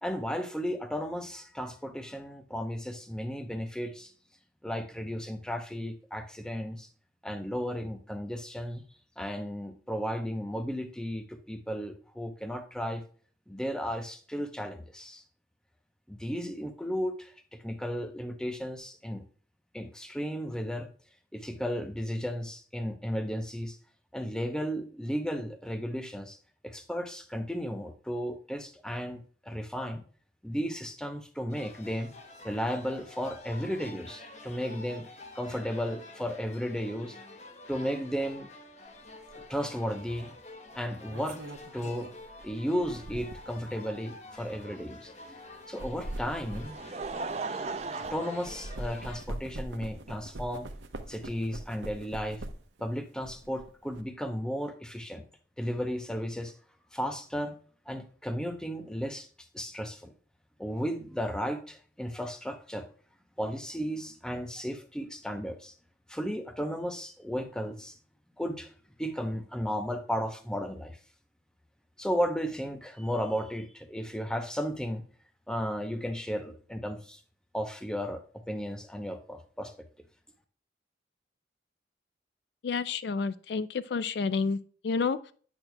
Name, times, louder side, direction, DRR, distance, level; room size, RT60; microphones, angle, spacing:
voice 1, 0.0-4.1 4.6-6.9 7.2-8.8 9.2-13.0 13.5-15.2 16.1-19.2 19.7-20.9 21.3-23.8 24.1-26.4 26.6-30.0 30.4-32.1 32.4-35.1 35.3-37.2 37.7-38.5 39.5-40.3 40.8-41.4 41.7-42.1 42.4-45.4 45.7-46.8 47.9-50.7 51.1-52.4 52.8-55.2 55.6-56.6 56.9-57.6 57.9-59.3 59.5-60.1 60.6-62.9 63.4-65.7 66.1-68.0 68.4-68.7 69.0-71.0 72.0-75.0 75.5-77.2 77.5-79.9, equal, 5° left, 7 dB, 0.7 m, -34 dB
sound 1, 31.5-49.3, left 2 dB, 35° left, 0.9 m, -48 dB
sound 2, 39.3-39.5 40.8-43.6 44.3-44.5 45.6-48.1 48.5-52.8 53.2-54.0, right 1 dB, 85° right, 0.8 m, -42 dB
Laughter, 46.2-49.5 50.3-50.4 51.8-51.9, right 4 dB, 35° right, 0.4 m, -38 dB
voice 2, 82.6-85.3, left 5 dB, 65° left, 15 dB, 0.4 m, -30 dB
8.7 x 6.2 x 2.2 m, 0.43 s
head